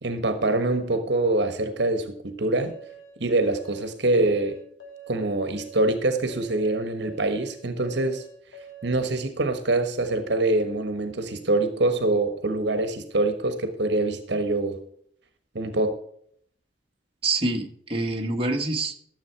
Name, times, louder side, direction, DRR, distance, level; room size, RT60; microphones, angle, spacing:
voice 1, 0.0-2.7 3.2-4.6 5.1-8.2 8.8-14.8 15.5-15.9, right 2 dB, 65° right, 8 dB, 1.3 m, -24 dB
sound 1, 2.5-9.1, right 4 dB, 70° left, 2.8 m, -45 dB
voice 2, 17.2-18.9, right 2 dB, 30° right, 1 dB, 1.5 m, -26 dB
13.0 x 7.6 x 4.6 m, 0.64 s
head